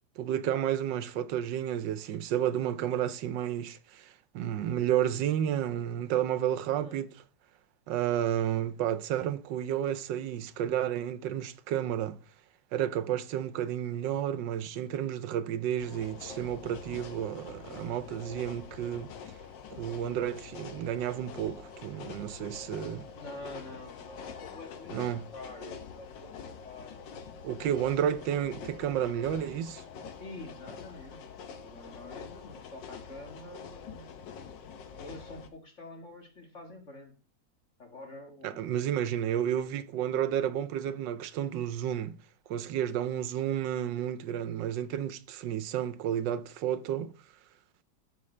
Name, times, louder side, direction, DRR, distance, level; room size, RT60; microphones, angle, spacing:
voice 1, 0.2-7.1 7.9-12.2 12.7-19.1 19.7-23.1 24.9-25.2 27.4-29.8 38.4-42.2 42.5-47.1, right 10 dB, 80° right, 1.3 m, -31 dB
sound 1, 15.8-35.5, left 6 dB, 80° left, 1.6 m, -45 dB
voice 2, 23.2-27.0 27.6-27.9 30.2-34.2 34.8-37.1 37.8-38.8, left 2 dB, 40° left, 1.9 m, -47 dB
12.5 x 5.4 x 3.2 m
omnidirectional pair, 2.0 m